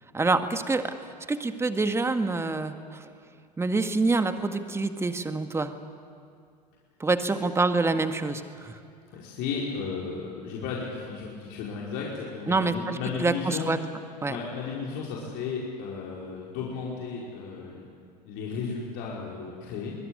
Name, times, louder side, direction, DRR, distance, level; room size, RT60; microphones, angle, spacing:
voice 1, 0.1-0.9 1.3-3.1 3.6-5.7 7.0-8.8 12.5-13.8 14.2-14.4, right 3 dB, 10° right, 8 dB, 1.8 m, -26 dB
voice 2, 9.1-13.7 14.3-17.8 18.2-19.9, left 5 dB, 50° left, -4 dB, 5.2 m, -34 dB
25.0 x 20.5 x 9.8 m, 2.3 s
figure-of-eight pair, 85°, 21 cm